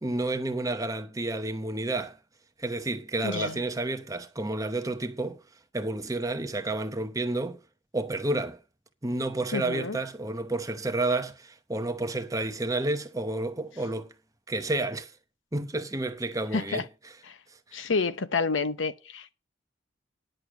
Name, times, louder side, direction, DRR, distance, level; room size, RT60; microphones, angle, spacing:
voice 1, 0.0-2.2 2.6-5.4 5.7-7.6 7.9-8.6 9.0-14.1 14.5-15.1 15.5-16.9 17.7-17.8, right 2 dB, 15° right, 0.9 m, -30 dB
voice 2, 3.2-3.6 9.5-10.0 16.5-16.8 17.3-17.4 17.7-19.3, left 4 dB, 80° left, 0.9 m, -29 dB
10.5 x 6.4 x 6.0 m
head